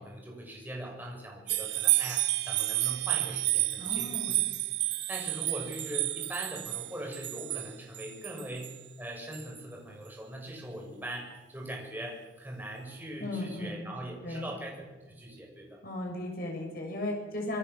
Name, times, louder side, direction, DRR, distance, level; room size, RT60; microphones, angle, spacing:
voice 1, 0.0-4.2 4.9-15.8, right 1 dB, 10° right, -1 dB, 7.4 m, -41 dB
sound 1, 1.5-8.8 9.3-9.4, right 17 dB, 70° right, 1.0 m, -30 dB
voice 2, 3.8-4.4 13.2-13.9 14.2-14.5 15.8-17.6, left 1 dB, 55° left, 0 dB, 7.1 m, -36 dB
27.0 x 23.0 x 7.3 m, 1.2 s
head